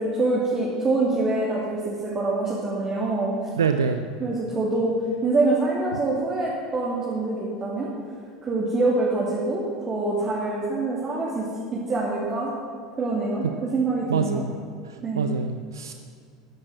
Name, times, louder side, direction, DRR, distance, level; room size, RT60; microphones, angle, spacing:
voice 1, 0.0-3.3 4.2-4.9 5.2-7.9 8.4-11.5 11.9-12.5 13.0-14.4 15.0-15.3, right 2 dB, 25° right, -5 dB, 2.8 m, -25 dB
voice 2, 3.6-4.0 14.1-14.5 15.2-15.9, right 6 dB, 70° right, 8 dB, 0.6 m, -25 dB
13.5 x 11.0 x 7.7 m, 2.2 s
figure-of-eight pair, 75°, 2 cm